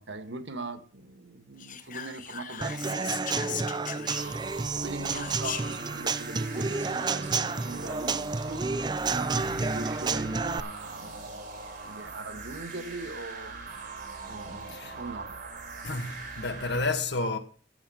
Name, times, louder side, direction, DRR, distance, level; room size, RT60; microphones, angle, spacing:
voice 1, 0.0-4.4 4.7-8.6 9.1-11.5 11.8-13.6 14.3-15.3, right 3 dB, 90° right, 1.7 m, -41 dB
Whispering, 1.6-4.6 5.1-5.9, left 8 dB, 50° left, 1.0 m, -38 dB
Human voice / Acoustic guitar / Drum, 2.6-10.6, right 4 dB, 25° right, 0.5 m, -30 dB
sound 1, 4.1-16.9, right 4 dB, 50° right, 4.4 m, -41 dB
voice 2, 14.7-15.0 15.8-17.4, left 3 dB, 70° left, 1.9 m, -31 dB
14.0 x 7.5 x 5.6 m
head